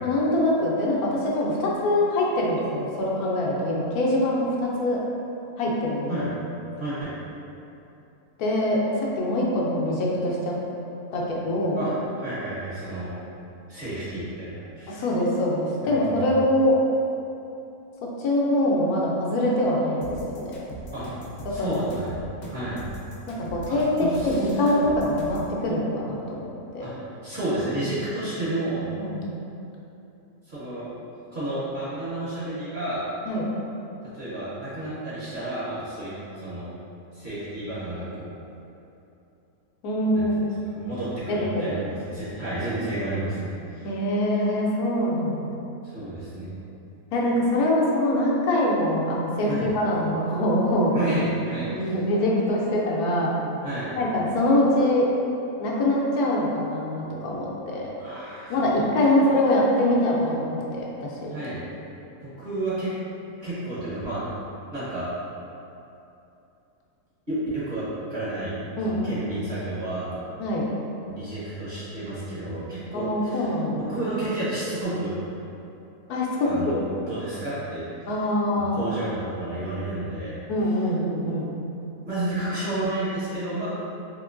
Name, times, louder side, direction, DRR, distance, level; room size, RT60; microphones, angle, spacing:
voice 1, 0.0-5.0 5.6-6.3 8.4-8.8 9.2-10.5 11.1-11.8 14.9-16.8 18.2-20.2 20.4-20.7 21.4-21.8 23.3-23.9 24.2-26.9 29.0-29.2 33.3-33.4 39.8-40.4 41.3-41.8 43.8-45.5 47.1-51.0 51.7-53.4 53.9-55.1 55.6-57.9 58.5-61.3 68.8-69.1 70.4-70.6 72.9-73.8 76.1-76.8 78.1-78.8 80.5-81.5, left 1 dB, 80° left, -3 dB, 1.1 m, -24 dB
voice 2, 6.8-7.1 11.7-13.1 13.7-15.0 15.8-16.0 20.9-21.1 21.5-22.2 22.5-22.8 23.7-24.6 26.8-26.9 27.2-28.9 30.4-30.9 31.3-33.0 34.1-36.7 37.1-38.3 40.1-40.3 40.7-43.9 45.8-46.5 49.4-49.7 50.9-51.9 53.6-53.9 58.0-58.8 61.3-61.6 62.2-62.9 63.4-64.3 64.7-65.1 67.3-68.6 68.8-70.2 71.1-73.5 73.7-75.1 76.4-78.2 78.5-80.4 82.1-83.7, right 1 dB, 40° right, -12 dB, 0.9 m, -31 dB
sound 1, 20.0-25.5, right 1 dB, 60° left, 0.8 m, -40 dB
3.5 x 2.9 x 2.5 m, 2.8 s
omnidirectional pair, 1.6 m